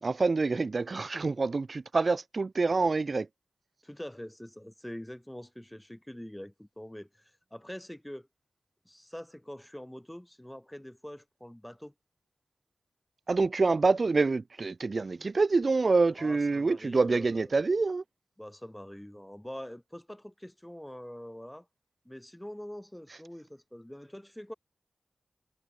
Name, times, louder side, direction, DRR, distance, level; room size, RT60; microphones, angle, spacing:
voice 1, 0.0-3.3 13.3-18.0, right 3 dB, 50° right, 0.7 m, -26 dB
voice 2, 3.8-8.3 8.8-11.9 16.2-17.5 18.4-21.7 22.0-24.5, equal, 5° left, 4.4 m, -44 dB
wide cardioid pair, 75°, 0 cm